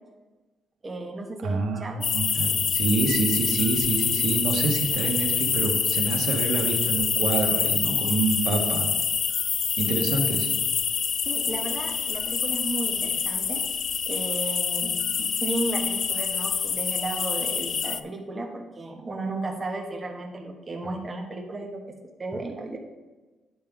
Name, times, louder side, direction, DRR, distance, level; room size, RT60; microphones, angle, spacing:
voice 1, 0.8-2.1 11.2-13.6 14.1-21.8 22.2-22.8, right 2 dB, 30° right, 2 dB, 1.3 m, -34 dB
voice 2, 1.4-8.9 9.8-10.6, right 3 dB, 80° right, 3 dB, 1.3 m, -27 dB
sound 1, 2.0-18.0, left 7 dB, 50° left, 0.4 m, -26 dB
9.4 x 3.7 x 5.8 m, 1.2 s
cardioid pair, 90°, 0 cm